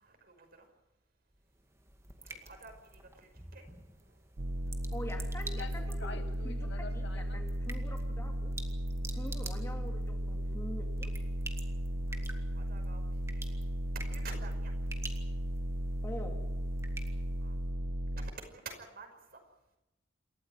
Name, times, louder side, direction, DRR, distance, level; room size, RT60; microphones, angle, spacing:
voice 1, 0.0-0.7 2.2-3.0 3.5-3.7 12.1-13.5 13.9-14.7 17.4-17.6 18.1-19.1, right 4 dB, 50° right, 5 dB, 5.5 m, -49 dB
sound 1, 1.3-17.8, right 2 dB, 15° right, 2.1 m, -50 dB
sound 2, 4.4-18.3, right 1 dB, 85° right, 1.0 m, -35 dB
voice 2, 4.9-8.5 9.1-11.1 16.0-16.4, left 1 dB, 15° left, 2 dB, 2.7 m, -45 dB
sound 3, 5.1-5.2 5.5-7.5, left 4 dB, 60° left, 1.7 m, -47 dB
28.0 x 14.0 x 9.1 m, 0.95 s
head